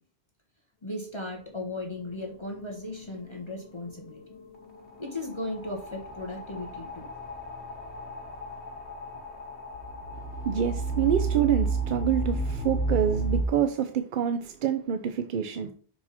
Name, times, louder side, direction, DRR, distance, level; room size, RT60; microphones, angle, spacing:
voice 1, 0.8-4.2 5.0-7.1, left 2 dB, 25° left, 1.4 m, -36 dB
sound 1, 1.7-1.8 2.1-13.4, right 3 dB, 85° left, 1.7 m, -33 dB
voice 2, 10.4-15.7, right 9 dB, 60° right, 0.6 m, -27 dB
5.7 x 4.7 x 4.2 m
omnidirectional pair, 1.1 m